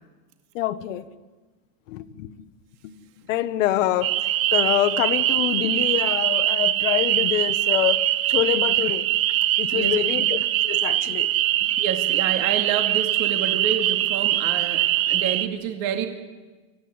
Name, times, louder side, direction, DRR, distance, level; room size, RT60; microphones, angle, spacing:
voice 1, 0.5-1.1 1.9-2.5 2.8-3.0 3.3-4.1 4.5-8.0 8.3-9.1 9.6-10.4 10.6-11.3 11.6-11.7, left 13 dB, 65° left, 1.5 m, -25 dB
sound 1, 4.0-15.5, right 14 dB, 80° right, 1.3 m, -22 dB
voice 2, 9.7-10.2 11.8-16.1, right 8 dB, 45° right, 2.4 m, -29 dB
25.5 x 15.5 x 9.7 m
supercardioid pair, 165°, 40 cm